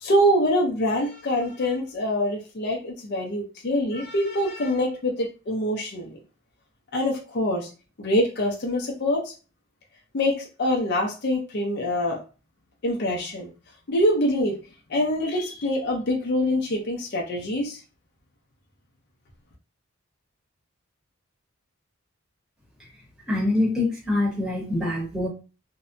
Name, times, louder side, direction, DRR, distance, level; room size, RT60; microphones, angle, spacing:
voice 1, 0.0-6.1 6.9-7.7 8.0-9.2 10.1-12.2 12.8-13.5 13.9-14.6 14.9-17.8, equal, 50° left, -1 dB, 0.5 m, -24 dB
voice 2, 23.3-25.3, left 2 dB, 5° right, -4 dB, 1.0 m, -24 dB
2.6 x 2.1 x 2.5 m, 0.33 s
head